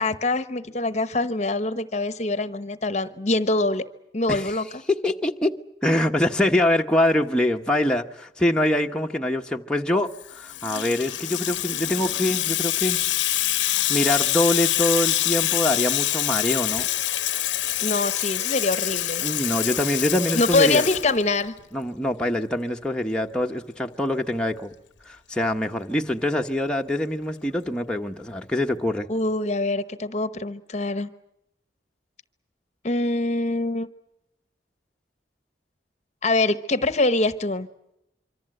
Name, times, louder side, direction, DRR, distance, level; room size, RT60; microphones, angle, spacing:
voice 1, 0.0-3.9 4.1-4.7 17.8-19.2 20.3-21.5 29.1-31.1 32.8-33.9 36.2-37.7, left 2 dB, 40° left, 1.0 m, -24 dB
voice 2, 4.9-13.0 13.9-16.9 19.2-20.8 21.7-24.7 25.1-29.1, left 1 dB, 5° left, 1.0 m, -24 dB
Water tap faucet / Sink (filling or washing), 10.2-21.6, left 14 dB, 90° left, 0.9 m, -25 dB
26.0 x 24.5 x 7.8 m
head